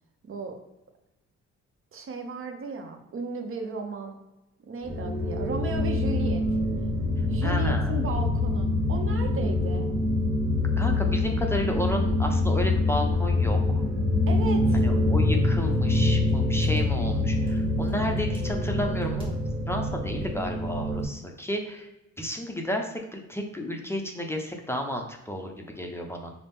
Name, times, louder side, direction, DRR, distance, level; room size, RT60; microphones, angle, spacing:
voice 1, 0.2-0.6 1.9-4.2 4.7-6.4 7.3-9.9 14.3-14.8, right 4 dB, 45° right, 4 dB, 0.7 m, -35 dB
sound 1, 4.8-21.0, left 2 dB, 15° right, 1.4 m, -25 dB
voice 2, 7.4-8.0 10.8-13.8 14.7-19.3 19.7-21.9 22.2-26.3, equal, 10° left, 2 dB, 0.5 m, -32 dB
4.0 x 2.0 x 3.5 m, 0.96 s
cardioid pair, 90°, 30 cm